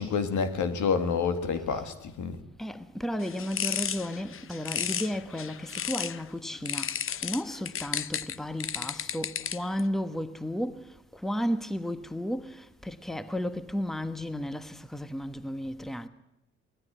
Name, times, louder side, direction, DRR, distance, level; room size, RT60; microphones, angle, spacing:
voice 1, 0.0-2.4, left 5 dB, 75° left, 2.2 m, -28 dB
voice 2, 2.6-6.9 7.2-10.8 11.2-16.1, equal, ahead, 1.1 m, -33 dB
sound 1, 3.2-6.2 6.7-9.8, left 8 dB, 45° left, 0.8 m, -33 dB
19.5 x 14.0 x 10.0 m
cardioid pair, 90°, 30 cm